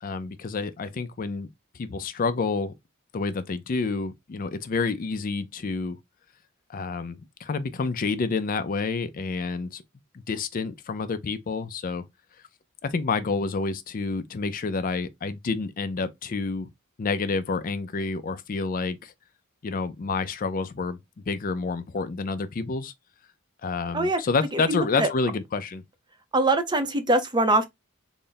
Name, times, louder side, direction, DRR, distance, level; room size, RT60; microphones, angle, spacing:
voice 1, 0.0-1.5 1.7-2.7 3.1-6.0 6.7-9.8 10.1-12.0 12.8-16.7 17.0-19.1 19.6-21.0 21.3-22.9 23.6-25.8, left 4 dB, 40° left, 0.4 m, -29 dB
voice 2, 24.5-25.1 26.3-27.7, right 2 dB, 20° right, 0.5 m, -23 dB
4.0 x 2.1 x 3.8 m
head